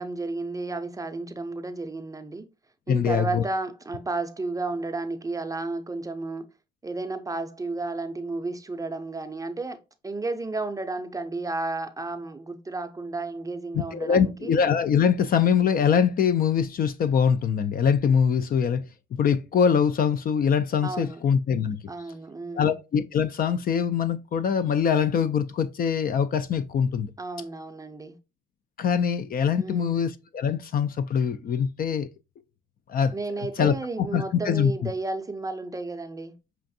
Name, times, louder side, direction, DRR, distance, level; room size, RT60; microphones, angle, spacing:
voice 1, 0.0-2.4 2.9-6.4 6.8-9.8 10.0-14.5 20.8-21.2 21.9-22.7 27.2-28.2 29.6-30.0 33.1-36.3, right 3 dB, 15° right, 0.5 m, -32 dB
voice 2, 2.9-3.4 13.9-18.8 19.1-21.8 22.5-27.1 28.8-32.1 32.9-33.1 33.6-34.7, left 7 dB, 45° left, 0.4 m, -23 dB
5.6 x 2.5 x 2.6 m
cardioid pair, 90°, 20 cm